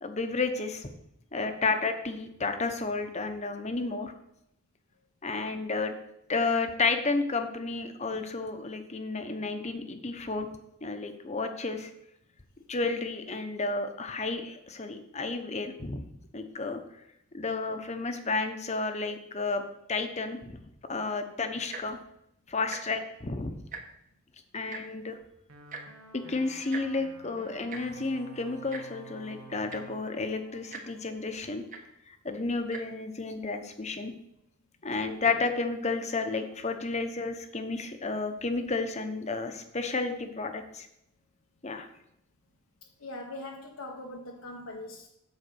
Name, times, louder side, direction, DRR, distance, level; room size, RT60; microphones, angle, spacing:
voice 1, 0.0-0.9 1.3-4.1 5.2-5.9 6.3-10.5 10.8-11.9 12.7-16.1 16.3-16.8 17.3-19.6 19.9-20.6 20.9-22.0 22.5-23.5 24.5-25.2 26.3-31.6 32.1-34.1 34.8-40.9 41.6-41.9, left 3 dB, 30° left, 7 dB, 0.9 m, -31 dB
Tick-tock, 21.6-22.0 22.6-22.8 23.1-23.3 23.6-24.1 24.7-24.8 25.7-25.8 26.7-26.8 27.7-27.8 28.7-28.8 29.4-29.5 29.7-30.0 30.7-30.8 31.7-31.8 32.6-32.8 33.5-33.6, right 4 dB, 40° right, 1.1 m, -40 dB
sound 1, 25.5-31.6, right 3 dB, 85° right, 1.0 m, -51 dB
voice 2, 43.0-45.1, left 1 dB, 80° left, 0 dB, 1.0 m, -41 dB
8.1 x 5.2 x 7.0 m, 0.79 s
head